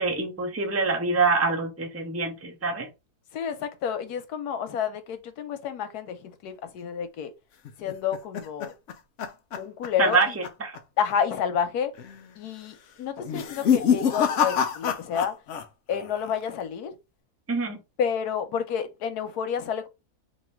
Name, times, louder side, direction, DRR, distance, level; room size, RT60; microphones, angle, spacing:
voice 1, 0.0-2.9 10.0-10.8 17.5-17.8, right 4 dB, 20° right, 0.4 m, -25 dB
voice 2, 3.3-7.3 7.8-8.7 9.6-10.3 11.0-11.9 12.4-15.3 15.9-16.9 18.0-19.9, left 8 dB, 85° left, 1.2 m, -29 dB
sound 1, 7.6-10.2 10.4-10.8 11.1-11.2 11.9-12.3 13.2-15.6 15.9-16.5, left 8 dB, 65° left, 0.8 m, -26 dB
3.1 x 2.7 x 4.3 m
omnidirectional pair, 1.6 m